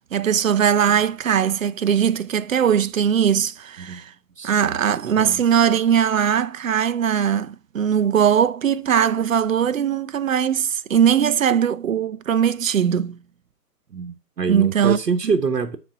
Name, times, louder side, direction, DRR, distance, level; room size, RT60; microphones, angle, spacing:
voice 1, 0.1-4.1 4.4-13.2 14.5-15.0, right 8 dB, 55° right, 0.7 m, -20 dB
voice 2, 4.4-4.8 5.0-5.4 13.9-15.8, right 5 dB, 80° right, 1.2 m, -25 dB
9.6 x 4.3 x 5.8 m
figure-of-eight pair, 145°, 48 cm